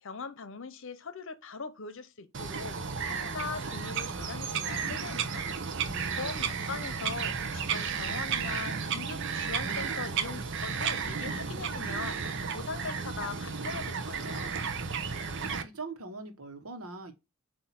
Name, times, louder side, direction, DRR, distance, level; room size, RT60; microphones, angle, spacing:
voice 1, 0.0-5.5 6.2-14.5, left 4 dB, 60° left, 0.8 m, -41 dB
Bird vocalization bird call bird song, 2.3-15.6, right 6 dB, 55° right, 0.8 m, -33 dB
voice 2, 5.8-6.2 15.6-17.1, right 3 dB, 80° right, 1.3 m, -42 dB
8.2 x 2.8 x 5.8 m
head